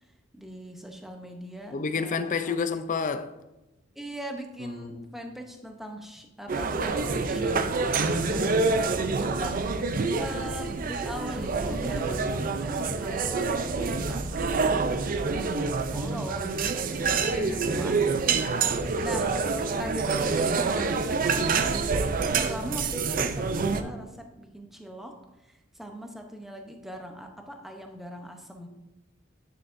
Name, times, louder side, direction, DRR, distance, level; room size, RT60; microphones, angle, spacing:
voice 1, 0.3-2.7 4.0-18.1 19.0-19.3 19.8-21.9 22.3-25.2 25.8-28.7, equal, ahead, 0.7 m, -41 dB
voice 2, 1.7-3.4 4.6-5.0 17.1-17.8, left 5 dB, 40° left, 0.4 m, -30 dB
sound 1, 6.5-23.8, right 4 dB, 45° right, 0.4 m, -27 dB
9.4 x 6.5 x 2.6 m
head